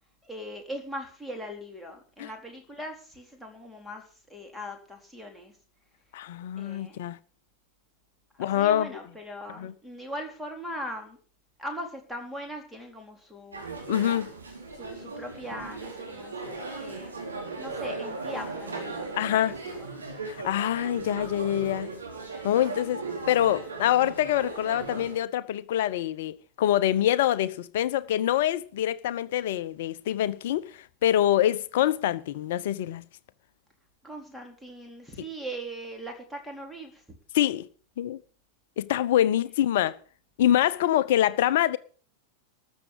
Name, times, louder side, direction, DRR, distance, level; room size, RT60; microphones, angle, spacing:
voice 1, 0.2-5.5 6.6-7.0 8.3-11.2 11.6-13.6 14.8-17.2 17.6-19.1 19.5-19.9 34.0-37.0 39.3-39.4, equal, ahead, 4.0 m, -40 dB
voice 2, 6.1-7.2 8.4-8.9 9.6-9.7 13.9-14.3 19.1-19.6 20.2-21.9 22.4-33.0 37.3-37.7 38.0-38.2 38.8-40.0 40.4-41.8, left 12 dB, 55° left, 0.8 m, -25 dB
sound 1, 13.5-25.2, right 3 dB, 75° right, 4.1 m, -37 dB
13.5 x 7.3 x 8.7 m
figure-of-eight pair, 90°, 0 cm